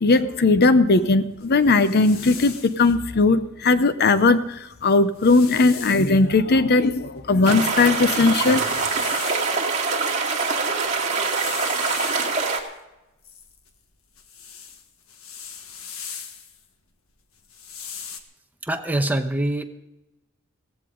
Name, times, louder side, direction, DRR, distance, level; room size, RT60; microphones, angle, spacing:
voice 1, 0.0-8.6, left 3 dB, 50° left, 0.7 m, -18 dB
sound 1, 1.4-3.0 4.3-4.4 4.8-6.2 6.8-9.8 10.7-12.6 13.2-16.6 17.4-18.2, left 7 dB, 75° left, 1.5 m, -39 dB
sound 2, 7.4-12.6, right 4 dB, 35° right, 2.2 m, -24 dB
voice 2, 18.6-19.6, right 1 dB, 10° right, 1.0 m, -24 dB
17.0 x 15.5 x 3.8 m
head